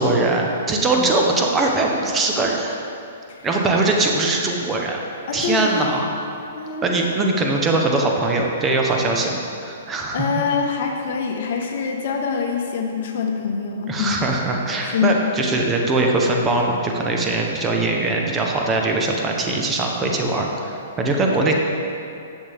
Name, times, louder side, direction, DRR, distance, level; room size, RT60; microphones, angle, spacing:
voice 1, 0.0-2.7 3.4-5.0 5.3-6.2 6.8-10.5 13.9-21.5, right 2 dB, 15° right, 0 dB, 0.9 m, -21 dB
voice 2, 5.3-6.0 6.5-6.9 10.1-14.3 14.8-15.1, left 5 dB, 60° left, 2 dB, 1.2 m, -25 dB
11.0 x 7.3 x 3.5 m, 2.6 s
hypercardioid pair, 150°, 0 cm